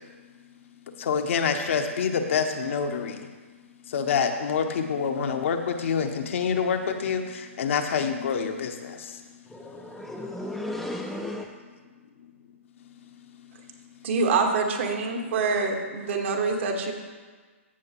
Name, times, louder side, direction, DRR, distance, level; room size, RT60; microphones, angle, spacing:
voice 1, 1.0-3.3 3.9-9.2, left 6 dB, 60° left, 5 dB, 1.0 m, -27 dB
voice 2, 9.5-11.5, left 1 dB, ahead, 0 dB, 0.5 m, -34 dB
voice 3, 14.0-16.9, right 4 dB, 55° right, 3 dB, 1.5 m, -25 dB
15.0 x 6.5 x 3.0 m, 1.4 s
hypercardioid pair, 125°, 8 cm